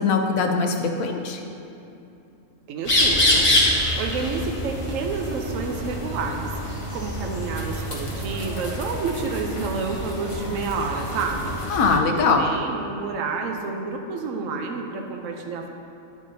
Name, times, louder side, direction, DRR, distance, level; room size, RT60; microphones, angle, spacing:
voice 1, 0.0-1.4 11.7-12.5, left 4 dB, 80° left, 4 dB, 1.1 m, -21 dB
voice 2, 2.7-11.5 12.2-15.7, right 4 dB, 75° right, 3 dB, 1.0 m, -29 dB
sound 1, 2.8-12.0, left 1 dB, 25° left, 0.8 m, -26 dB
9.4 x 7.3 x 2.7 m, 2.8 s
omnidirectional pair, 1.4 m